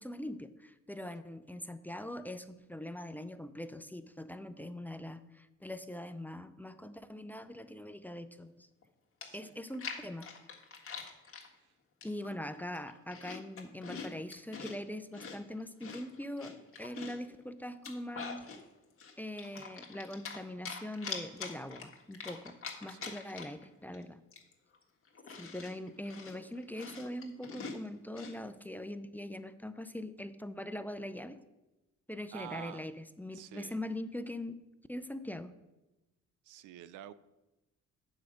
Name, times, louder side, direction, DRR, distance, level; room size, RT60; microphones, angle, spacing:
voice 1, 0.0-8.7 9.3-10.3 12.0-18.4 19.2-24.2 25.4-31.4 32.1-34.6 34.9-35.5, left 1 dB, 5° left, 10 dB, 0.5 m, -42 dB
Chewing mastication, 8.8-8.9 9.2-11.5 12.0-12.4 12.7-14.8 15.1-17.3 17.7-18.6 19.0-20.4 20.7-23.7 23.9-24.0 24.3-28.4, left 5 dB, 45° left, 1.6 m, -44 dB
voice 2, 9.2-9.5 11.6-11.7 12.2-12.4 22.9-23.2 32.3-32.8 33.3-33.8 36.4-37.1, right 12 dB, 85° right, 15 dB, 0.5 m, -48 dB
8.2 x 4.9 x 6.4 m, 1.0 s
cardioid pair, 90°, 30 cm